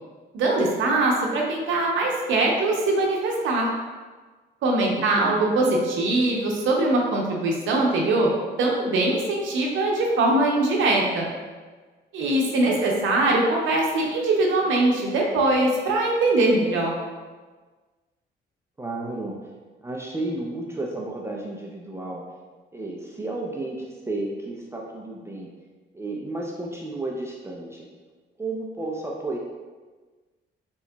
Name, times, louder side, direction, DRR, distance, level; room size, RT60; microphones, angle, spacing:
voice 1, 0.3-3.7 4.6-8.3 8.6-11.3 12.1-16.9, right 2 dB, 80° right, -1 dB, 0.6 m, -22 dB
voice 2, 4.9-5.4 12.6-12.8 18.8-19.4 19.8-22.2 22.7-25.5 25.9-27.9 28.4-29.4, right 2 dB, 15° right, -2 dB, 0.4 m, -32 dB
3.6 x 2.9 x 2.2 m, 1.4 s
cardioid pair, 90°, 20 cm